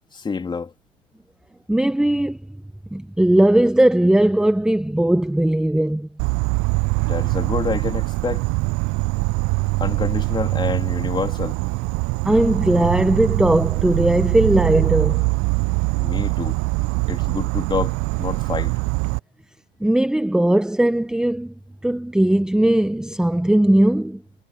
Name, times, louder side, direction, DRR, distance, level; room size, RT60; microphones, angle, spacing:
voice 1, 0.1-0.7 7.1-8.5 9.8-11.6 16.0-16.6 17.1-18.7, left 5 dB, 15° left, 3.5 m, -27 dB
voice 2, 1.7-2.4 2.9-6.1 12.2-15.2 19.8-21.5 21.8-24.2, right 1 dB, ahead, 1.6 m, -18 dB
Insect, 6.2-19.2, right 28 dB, 40° right, 1.0 m, -23 dB
hypercardioid pair, 100°, 30 cm